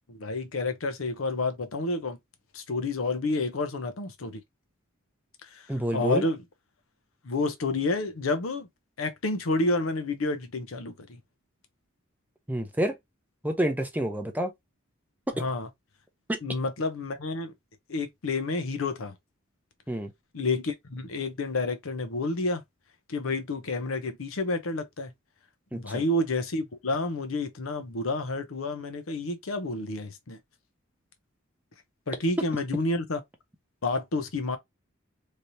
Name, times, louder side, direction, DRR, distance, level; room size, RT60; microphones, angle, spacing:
voice 1, 0.1-2.2 2.5-4.4 5.9-6.4 7.2-8.7 9.0-11.2 15.4-15.7 16.4-17.5 17.9-19.1 20.3-22.6 23.1-25.1 25.7-30.4 32.1-33.2 33.8-34.6, left 2 dB, 75° left, 0.7 m, -29 dB
voice 2, 5.7-6.2 12.5-13.0 13.4-14.5 15.4-15.5 16.3-16.4 19.9-20.1 25.7-26.0 32.4-32.5, right 1 dB, 10° right, 0.6 m, -28 dB
3.2 x 2.8 x 2.7 m
head